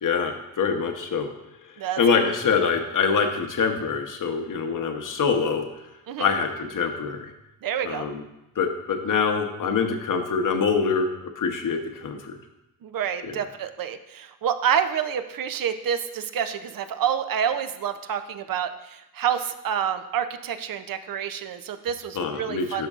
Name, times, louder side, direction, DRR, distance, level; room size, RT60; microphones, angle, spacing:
voice 1, 0.0-1.3 2.0-5.6 6.2-7.3 7.8-8.2 8.6-11.1 11.4-12.4 13.2-13.3 22.2-22.9, left 5 dB, 60° left, 5 dB, 1.0 m, -25 dB
voice 2, 7.6-8.0 12.8-22.9, right 8 dB, 65° right, 9 dB, 0.6 m, -28 dB
12.0 x 5.2 x 2.4 m, 0.91 s
cardioid pair, 85°, 36 cm